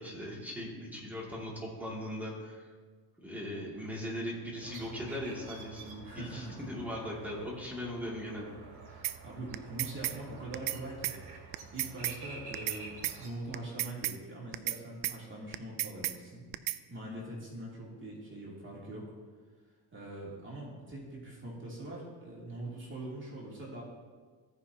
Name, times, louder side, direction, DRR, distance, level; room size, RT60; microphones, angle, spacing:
voice 1, 0.0-2.6 3.2-8.5, equal, 5° right, -4 dB, 2.5 m, -39 dB
sound 1, 4.6-13.3, right 4 dB, 55° right, 2.0 m, -49 dB
voice 2, 6.0-6.6 8.9-11.2 11.7-16.4 16.9-19.0 19.9-23.8, right 1 dB, 25° right, -5 dB, 2.9 m, -43 dB
sound 2, 9.0-9.2 9.5-10.2 10.5-10.8 11.0-11.2 11.5-12.2 12.5-12.8 13.0-13.2 13.5-14.2 14.5-14.8 15.0-15.2 15.5-16.2 16.5-16.8, right 16 dB, 80° right, 0.6 m, -33 dB
16.0 x 5.6 x 2.9 m, 1.5 s
cardioid pair, 90°, 46 cm